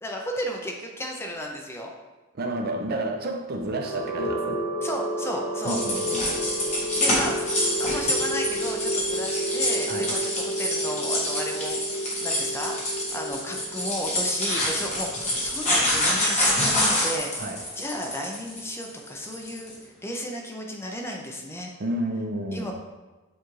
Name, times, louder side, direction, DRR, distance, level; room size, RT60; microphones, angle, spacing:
voice 1, 0.0-1.9 4.8-5.8 7.0-17.3 17.8-21.7 22.5-22.7, equal, 10° left, 1 dB, 0.4 m, -34 dB
voice 2, 2.3-4.7 5.6-6.2 9.9-10.2 17.4-17.6 21.8-22.7, right 1 dB, 45° right, 3 dB, 0.5 m, -30 dB
sound 1, 3.7-17.6, right 1 dB, 50° left, 1.3 m, -32 dB
sound 2, 5.6-19.7, left 1 dB, 30° left, 1.3 m, -27 dB
7.0 x 2.3 x 3.1 m, 1.2 s
head